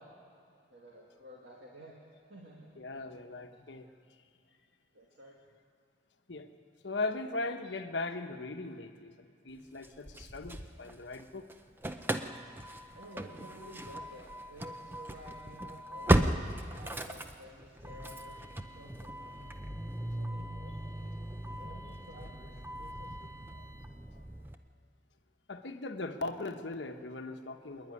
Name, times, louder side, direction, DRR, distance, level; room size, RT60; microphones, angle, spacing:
voice 1, 0.7-2.0 2.3-2.7 4.9-5.4 12.9-19.6 20.1-21.2 21.6-23.4, equal, 65° right, -3 dB, 2.2 m, -52 dB
voice 2, 2.8-3.9 6.3-6.5 6.8-11.5 25.5-27.9, left 2 dB, 75° left, 6 dB, 1.1 m, -39 dB
Engine starting / Slam, 9.8-11.2 11.5-24.5, right 1 dB, 10° right, 0.7 m, -36 dB
26.0 x 10.5 x 9.7 m, 2.3 s
head